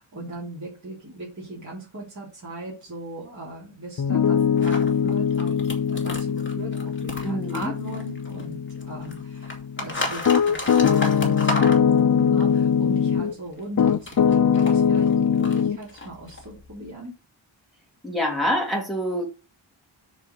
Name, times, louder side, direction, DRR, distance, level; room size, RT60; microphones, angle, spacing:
voice 1, 0.0-5.6 5.9-17.2, right 1 dB, 35° right, 3.1 m, -38 dB
Piano, 4.0-13.3 13.8-15.8, left 7 dB, 45° left, 0.5 m, -22 dB
sound 1, 4.6-8.5 8.8-12.4 13.6-16.9, left 1 dB, 25° left, 2.4 m, -33 dB
voice 2, 7.2-7.7 18.0-19.2, equal, ahead, 3.1 m, -26 dB
6.3 x 5.1 x 6.6 m
wide cardioid pair, 120°, 48 cm